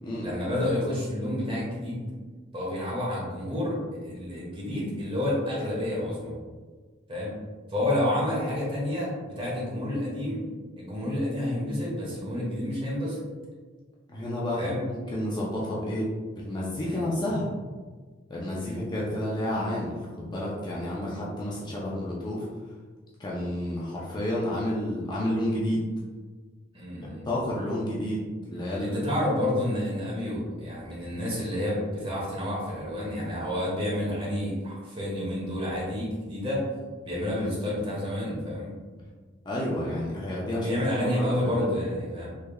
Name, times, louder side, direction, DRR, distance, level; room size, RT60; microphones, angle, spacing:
voice 1, 0.2-2.0 2.5-6.3 7.1-7.4 7.7-10.4 10.8-13.2 14.6-14.8 16.8-17.1 18.5-18.8 26.7-27.2 28.8-36.6 37.0-38.7 40.5-42.3, left 1 dB, 25° right, -5 dB, 1.1 m, -29 dB
voice 2, 14.1-16.1 16.3-17.5 18.3-22.5 23.2-25.8 27.3-28.2 28.5-29.0 37.3-37.5 39.4-41.7, left 1 dB, 20° left, -5 dB, 0.5 m, -30 dB
3.4 x 3.2 x 2.2 m, 1.4 s
head